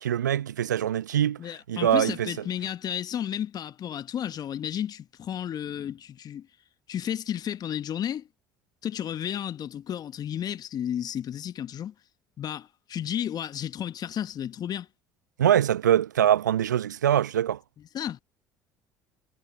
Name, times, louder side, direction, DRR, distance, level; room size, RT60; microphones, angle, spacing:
voice 1, 0.0-1.4 1.7-2.3 15.4-17.6, right 10 dB, 80° right, 0.8 m, -23 dB
voice 2, 1.4-6.5 6.9-8.3 8.8-11.9 12.4-14.9 17.9-18.3, left 10 dB, 45° left, 1.5 m, -32 dB
figure-of-eight pair, 55°, 10 cm